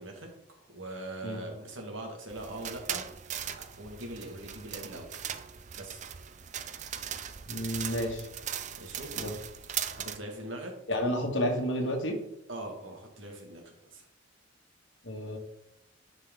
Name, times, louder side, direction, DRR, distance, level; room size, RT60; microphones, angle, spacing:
voice 1, 0.0-3.0 3.8-5.3 5.8-6.0 8.8-9.4 9.9-10.7 12.5-13.6 13.9-14.1, right 1 dB, 85° right, 2 dB, 1.7 m, -42 dB
sound 1, 2.3-10.2, right 9 dB, 40° right, 0.5 m, -39 dB
voice 2, 7.5-8.3 9.1-9.3 10.9-12.2 15.0-15.4, equal, 70° left, 1 dB, 1.8 m, -30 dB
10.0 x 4.8 x 3.7 m, 0.82 s
head